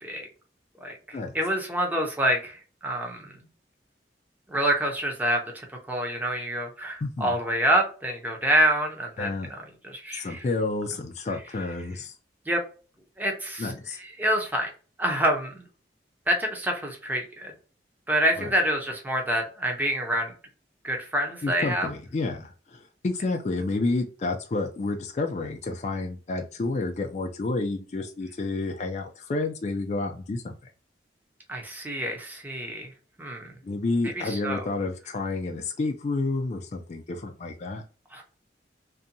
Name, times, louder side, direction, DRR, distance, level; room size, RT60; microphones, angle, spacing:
voice 1, 0.8-2.6 2.8-3.3 4.5-10.4 12.5-12.6 13.2-13.7 14.2-14.7 15.0-15.7 16.3-17.5 18.1-20.3 20.8-21.9 31.5-32.9 33.2-33.5 34.2-34.6 38.1-38.2, right 1 dB, 10° right, 2 dB, 0.6 m, -27 dB
voice 2, 7.0-7.4 9.2-9.5 10.1-12.1 13.6-14.0 18.4-18.5 21.4-30.6 33.6-37.8, left 3 dB, 40° left, 3 dB, 0.3 m, -30 dB
2.6 x 2.2 x 2.6 m, 0.37 s
head